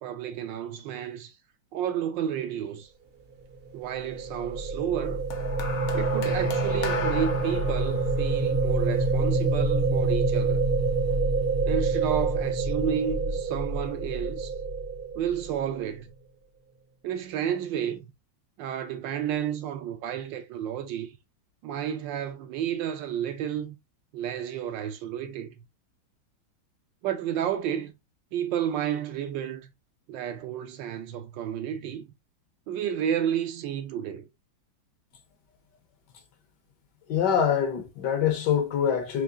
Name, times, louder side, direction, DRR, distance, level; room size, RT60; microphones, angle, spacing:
voice 1, 0.0-1.3 1.7-2.9 3.7-5.3 5.9-10.7 11.6-14.5 15.1-16.1 17.0-18.1 18.6-21.2 21.6-23.8 24.1-25.5 27.0-27.9 28.3-29.7 30.1-32.1 32.7-34.3, right 9 dB, 75° right, 1.3 m, -31 dB
sound 1, 3.7-15.8, right 3 dB, 50° right, 0.7 m, -27 dB
sound 2, 5.3-9.7 10.7-10.9, left 5 dB, 85° left, 1.7 m, -36 dB
voice 2, 37.1-39.2, left 8 dB, 70° left, 1.3 m, -24 dB
4.9 x 3.1 x 2.5 m
omnidirectional pair, 2.2 m